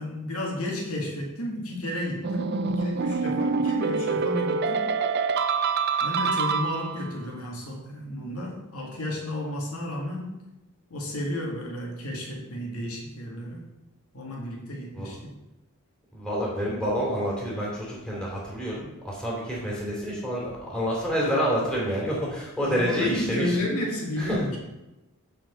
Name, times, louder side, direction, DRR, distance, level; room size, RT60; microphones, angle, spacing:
voice 1, 0.0-4.9 6.0-10.3 10.9-13.6 14.1-15.3 22.6-24.6, left 1 dB, 75° left, -1 dB, 2.0 m, -32 dB
sound 1, 2.2-7.2, right 4 dB, 45° right, 0.5 m, -26 dB
voice 2, 16.1-23.6 24.2-24.4, equal, 5° left, -5 dB, 2.6 m, -28 dB
7.7 x 4.5 x 6.7 m, 0.98 s
head